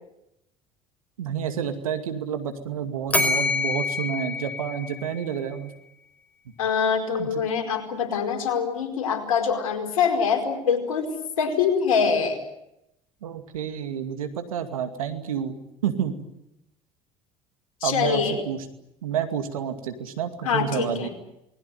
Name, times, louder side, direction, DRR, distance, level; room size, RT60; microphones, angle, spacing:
voice 1, 1.2-5.7 7.2-7.4 13.2-15.6 15.8-16.2 17.8-18.7 19.0-21.1, right 8 dB, 85° right, 7 dB, 2.4 m, -29 dB
Bell, 3.1-5.4, left 3 dB, 10° left, 4.7 m, -26 dB
voice 2, 6.6-12.4 17.8-18.4 20.4-21.1, left 6 dB, 85° left, 4 dB, 4.8 m, -24 dB
27.5 x 20.5 x 9.4 m, 0.85 s
hypercardioid pair, 65°, 17 cm